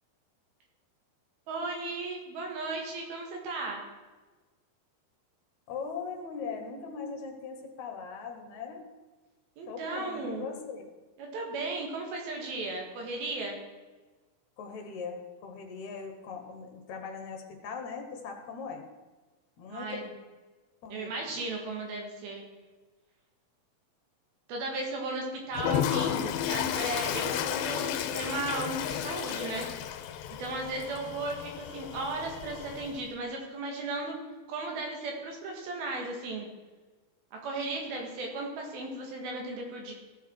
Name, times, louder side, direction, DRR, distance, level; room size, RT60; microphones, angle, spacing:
voice 1, 1.5-3.8 9.6-10.5 11.2-13.6 19.7-20.1 20.9-22.4 24.5-29.7 30.4-34.2 34.5-36.5 37.3-39.9, right 2 dB, 80° right, 1 dB, 3.7 m, -35 dB
voice 2, 5.7-8.8 9.7-10.8 14.6-18.9 19.6-20.1 20.8-21.4, left 5 dB, 60° left, 4 dB, 2.3 m, -40 dB
Toilet flush, 25.5-33.1, left 10 dB, 85° left, 2.4 m, -33 dB
15.5 x 7.0 x 4.6 m, 1.3 s
omnidirectional pair, 4.3 m